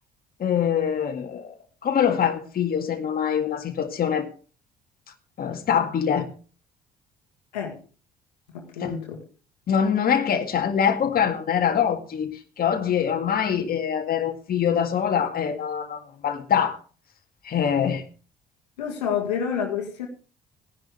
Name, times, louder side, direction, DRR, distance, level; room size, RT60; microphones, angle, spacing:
voice 1, 0.4-1.5 1.8-4.3 5.4-6.3 8.8-8.9 9.7-16.8 17.4-18.0, left 8 dB, 45° left, 2.0 m, -24 dB
voice 2, 8.5-9.2 18.8-20.1, left 7 dB, 85° left, 2.0 m, -28 dB
17.5 x 10.5 x 3.3 m
hypercardioid pair, 50°, 20 cm